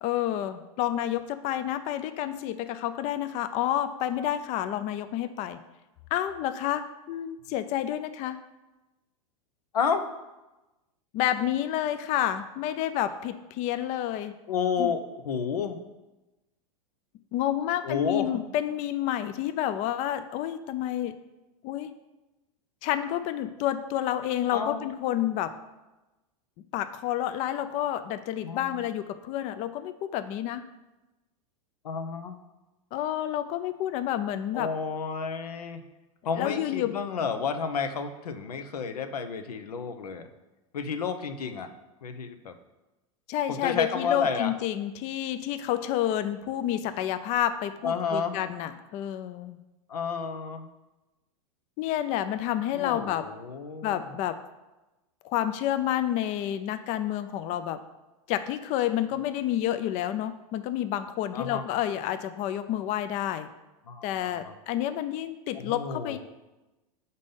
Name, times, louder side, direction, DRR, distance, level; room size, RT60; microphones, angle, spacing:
voice 1, 0.0-5.6 6.1-8.4 11.1-14.3 14.8-14.9 17.3-21.1 21.6-21.9 22.8-25.5 26.7-30.6 32.9-34.7 36.4-37.0 43.3-49.6 51.8-53.3 53.8-54.4 55.2-57.8 58.3-63.5 64.0-66.2, left 12 dB, 40° left, 11 dB, 0.4 m, -29 dB
voice 2, 14.5-15.8 17.8-18.4 24.5-24.9 28.4-28.8 31.8-32.4 34.5-35.8 36.2-40.3 40.7-41.7 42.0-42.5 43.5-44.5 47.8-48.4 49.9-50.7 52.7-54.1 61.3-61.6 63.9-64.5 65.5-66.2, left 6 dB, 90° left, 8 dB, 0.6 m, -31 dB
5.2 x 4.1 x 5.3 m, 1.1 s
hypercardioid pair, 110°, 19 cm